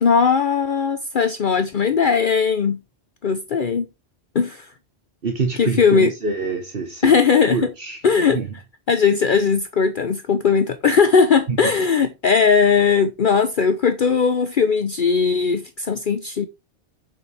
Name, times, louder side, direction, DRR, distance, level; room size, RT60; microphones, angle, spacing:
voice 1, 0.0-2.8 3.2-3.9 4.3-4.7 5.6-6.1 7.0-7.7 8.0-8.4 8.9-16.5, left 5 dB, 55° left, 0.9 m, -18 dB
voice 2, 5.2-7.1 7.5-8.0 8.3-8.5 11.5-11.7, right 4 dB, 60° right, 1.5 m, -25 dB
7.8 x 7.1 x 3.4 m
omnidirectional pair, 1.1 m